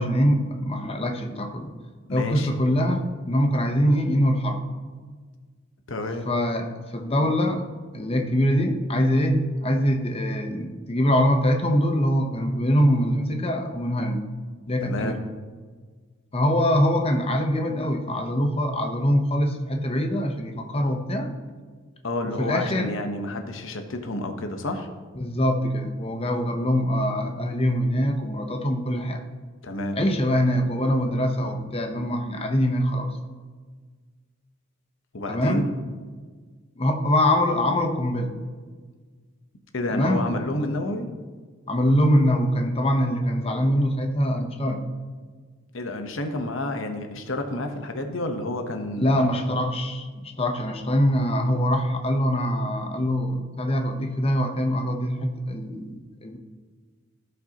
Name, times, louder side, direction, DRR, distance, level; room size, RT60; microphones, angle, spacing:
voice 1, 0.0-1.7 2.1-4.6 6.2-7.6 7.9-14.2 14.7-15.2 16.3-21.3 22.2-22.9 25.2-29.2 29.9-33.1 35.3-35.7 36.8-38.4 39.9-40.3 41.7-44.8 49.0-55.9 56.2-56.4, equal, 25° left, 4 dB, 0.8 m, -23 dB
voice 2, 2.1-2.5 5.9-6.3 14.8-15.2 22.0-24.9 29.6-30.0 35.1-35.7 39.7-41.1 45.7-49.2, left 2 dB, 60° left, 5 dB, 1.0 m, -30 dB
16.0 x 5.4 x 2.9 m, 1.5 s
head